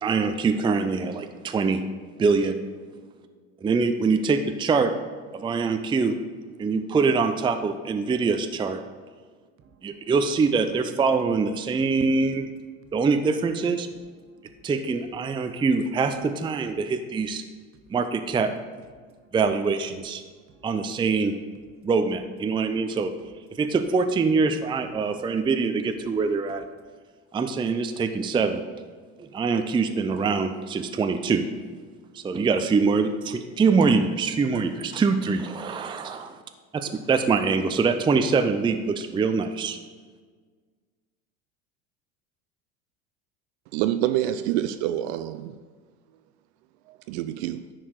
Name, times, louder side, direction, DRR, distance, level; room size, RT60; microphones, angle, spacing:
voice 1, 0.0-1.8 2.2-2.6 3.6-4.9 5.3-6.2 6.6-8.8 9.8-12.5 12.9-13.9 14.6-17.4 17.9-18.5 19.3-20.2 20.6-21.4 21.8-23.1 23.6-26.7 27.3-28.6 29.2-31.4 32.1-36.4 36.7-39.8, right 4 dB, 15° right, 0.5 m, -24 dB
voice 2, 2.9-3.3 9.6-10.1 11.8-11.9 14.2-14.7 19.0-19.3 20.5-21.0 22.6-23.0 23.5-23.6 25.0-25.4 36.1-36.2, right 6 dB, 40° right, 1.0 m, -59 dB
voice 3, 43.7-45.6 46.9-47.7, right 12 dB, 70° right, 0.5 m, -27 dB
10.0 x 4.6 x 4.7 m
hypercardioid pair, 85°, 34 cm